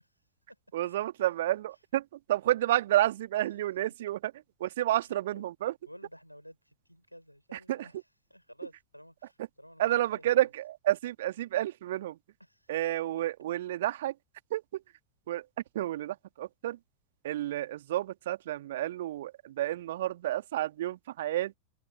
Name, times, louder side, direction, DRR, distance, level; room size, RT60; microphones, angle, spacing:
voice 1, 0.7-4.3 4.6-5.7 7.5-7.9 9.8-12.2 12.7-14.2 14.5-14.8 15.3-15.5 15.7-16.8 17.2-21.5, right 14 dB, 55° right, 2.1 m, -30 dB
voice 2, 5.0-5.5 5.9-7.9 8.3-10.5 12.5-12.7, equal, 90° left, 5.3 m, -52 dB
open air
figure-of-eight pair, 90°, 0 cm